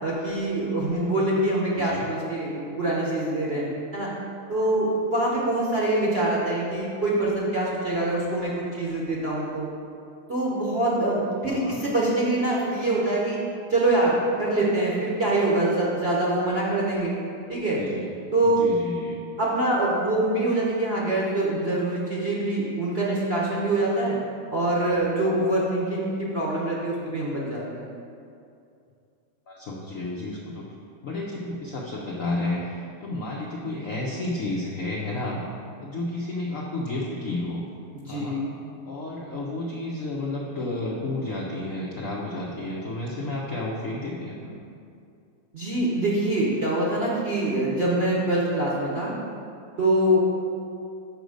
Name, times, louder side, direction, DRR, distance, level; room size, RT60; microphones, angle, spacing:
voice 1, 0.0-3.6 3.9-4.1 4.5-9.7 10.3-13.4 13.7-17.1 17.5-17.8 18.3-18.6 19.4-24.2 24.5-27.9 37.9-38.5 45.5-49.1 49.8-50.2, right 1 dB, 45° right, -6 dB, 0.8 m, -24 dB
voice 2, 1.7-2.1 11.5-11.8 17.8-18.1 18.4-19.2 29.5-30.7 31.0-37.7 38.1-38.4 38.8-44.7, left 2 dB, 90° left, -3 dB, 0.7 m, -31 dB
6.0 x 5.1 x 6.3 m, 2.5 s
omnidirectional pair, 2.4 m